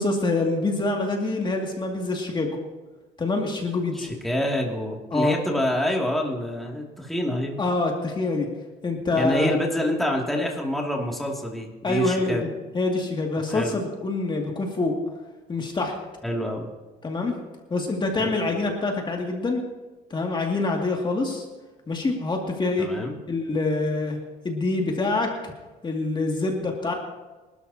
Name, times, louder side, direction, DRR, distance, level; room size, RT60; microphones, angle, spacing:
voice 1, 0.0-2.6 3.2-4.1 5.1-5.4 7.6-8.5 8.8-9.5 11.8-12.5 12.7-15.0 15.5-16.0 17.0-17.4 17.7-19.6 20.1-21.4 21.9-22.9 23.3-24.2 24.4-25.3 25.8-26.9, left 3 dB, 25° left, 1 dB, 2.4 m, -25 dB
voice 2, 3.9-7.6 9.1-12.4 13.5-13.8 16.2-16.7 18.2-18.3 22.8-23.1, left 1 dB, ahead, -2 dB, 2.5 m, -27 dB
25.0 x 12.5 x 2.9 m, 1.2 s
cardioid pair, 110°, 17 cm